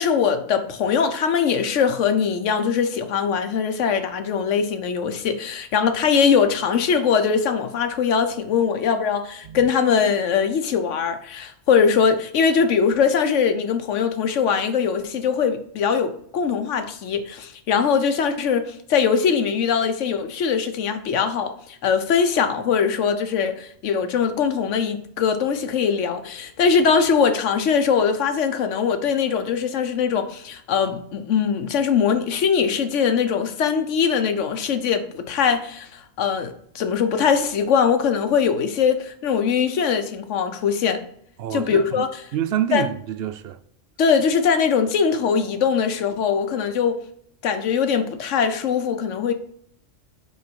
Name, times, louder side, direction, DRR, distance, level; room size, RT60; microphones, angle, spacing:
voice 1, 0.0-41.0 41.5-42.1 42.7-42.9 44.0-47.0 47.4-49.3, left 6 dB, 80° left, 1.1 m, -21 dB
voice 2, 41.4-42.1 42.3-43.6, right 10 dB, 65° right, 0.7 m, -27 dB
5.5 x 4.8 x 4.5 m
omnidirectional pair, 1.2 m